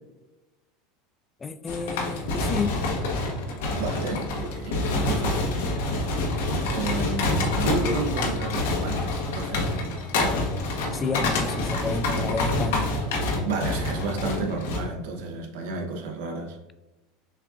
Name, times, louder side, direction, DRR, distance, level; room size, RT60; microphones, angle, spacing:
voice 1, 1.4-2.7 10.9-13.0, left 4 dB, 20° left, 11 dB, 0.3 m, -30 dB
sound 1, 1.7-14.8, left 2 dB, 85° left, 0.8 m, -27 dB
voice 2, 3.7-5.7 6.7-9.1 9.3-9.7 13.4-16.6, right 4 dB, 75° right, 3 dB, 0.7 m, -32 dB
6.4 x 2.4 x 2.3 m, 1.1 s
supercardioid pair, 120°, 0 cm